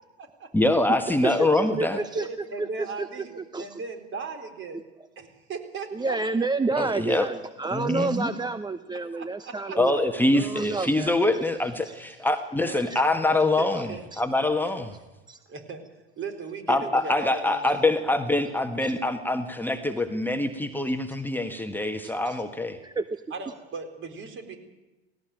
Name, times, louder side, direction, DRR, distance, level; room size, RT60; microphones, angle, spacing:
voice 1, 0.5-2.0 6.8-7.3 7.7-8.3 9.8-13.9 14.2-14.9 16.7-22.8, left 2 dB, 5° left, 5 dB, 1.5 m, -24 dB
voice 2, 1.2-2.3 2.6-3.1 3.5-3.8 5.9-9.9 10.3-11.2 11.8-11.9 12.7-13.0 13.7-13.8 14.1-14.2 15.3-15.4 18.8-18.9 22.0-22.4 22.8-23.2, right 3 dB, 15° right, 13 dB, 0.8 m, -29 dB
voice 3, 1.9-4.8 5.2-6.5 9.1-10.0 12.1-12.2 12.6-14.1 14.4-14.7 15.5-15.8 16.2-17.9 23.3-24.6, right 4 dB, 40° right, 7 dB, 4.2 m, -38 dB
17.5 x 17.5 x 9.1 m, 1.1 s
hypercardioid pair, 85°, 32 cm